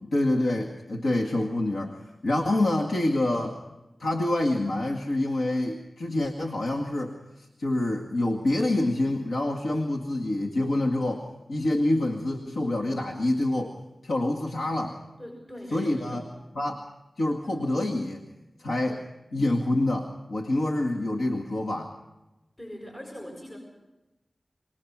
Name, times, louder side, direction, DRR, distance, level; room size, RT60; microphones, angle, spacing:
voice 1, 0.1-2.0 2.2-3.6 4.0-13.7 14.0-15.0 15.7-16.2 16.6-16.8 17.2-18.2 18.6-19.0 19.3-21.9, left 1 dB, 85° left, 0 dB, 2.0 m, -26 dB
voice 2, 15.2-16.3 22.6-23.6, equal, 40° left, -1 dB, 6.9 m, -41 dB
25.0 x 20.5 x 6.1 m, 1.0 s
cardioid pair, 40°, 0 cm